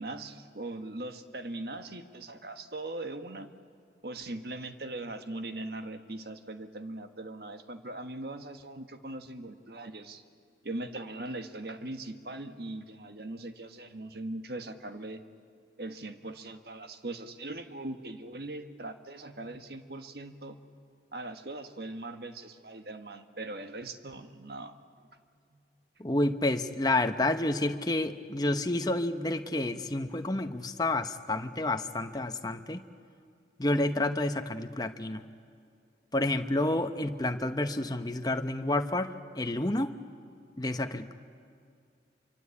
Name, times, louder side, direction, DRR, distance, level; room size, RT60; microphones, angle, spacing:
voice 1, 0.0-3.5 4.0-10.2 10.6-15.2 15.8-20.7 21.1-24.7 25.5-25.6, right 2 dB, 65° right, 8 dB, 1.5 m, -40 dB
voice 2, 26.0-32.8 33.6-35.2 36.1-39.9 40.6-41.1, left 2 dB, 20° left, 7 dB, 1.0 m, -29 dB
26.5 x 24.5 x 8.5 m, 2.3 s
head